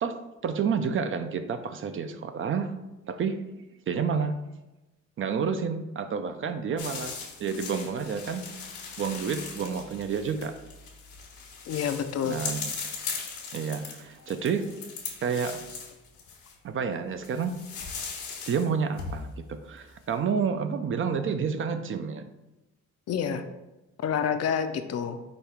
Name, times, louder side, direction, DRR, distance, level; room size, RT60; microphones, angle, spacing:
voice 1, 0.0-2.8 3.1-3.5 3.9-4.3 5.2-7.1 7.4-8.4 9.0-10.6 12.2-12.7 13.5-14.7 15.2-15.6 16.6-17.6 18.5-22.2, right 6 dB, 45° right, 0.4 m, -29 dB
sound 1, 6.8-16.5 17.2-18.7 19.0-19.9, left 5 dB, 85° left, 1.2 m, -39 dB
voice 2, 11.7-12.4 23.1-23.4 24.0-25.2, left 8 dB, 55° left, 0.5 m, -28 dB
5.2 x 2.3 x 4.3 m
cardioid pair, 90°, 30 cm